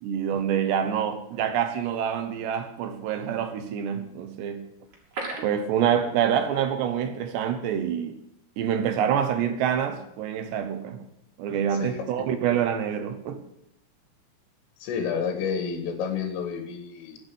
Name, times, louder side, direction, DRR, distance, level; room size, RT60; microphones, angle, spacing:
voice 1, 0.0-4.7 5.4-8.2 8.6-11.0 11.4-13.4, right 9 dB, 70° right, 2.9 m, -26 dB
sound 1, 4.9-6.6 6.9-7.0 7.4-7.6, right 3 dB, 40° right, 3.8 m, -37 dB
voice 2, 11.7-12.3 14.8-17.2, left 6 dB, 85° left, 4.4 m, -30 dB
14.0 x 8.4 x 9.9 m
omnidirectional pair, 5.7 m